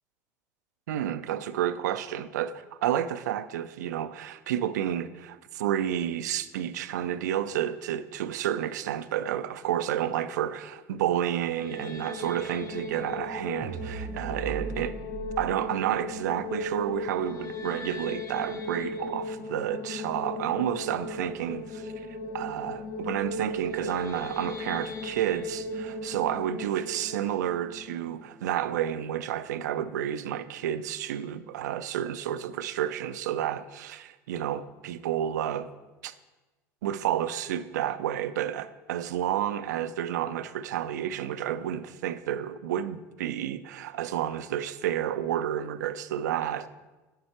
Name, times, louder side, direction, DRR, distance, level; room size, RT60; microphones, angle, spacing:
voice 1, 0.9-15.0 15.4-35.7 36.0-36.1 36.8-46.7, right 10 dB, 85° right, 0.4 m, -30 dB
sound 1, 11.4-28.5, left 2 dB, 35° left, 1.0 m, -37 dB
sound 2, 13.6-15.5, right 6 dB, 45° right, 0.7 m, -37 dB
9.3 x 6.6 x 4.4 m
hypercardioid pair, 80°, 9 cm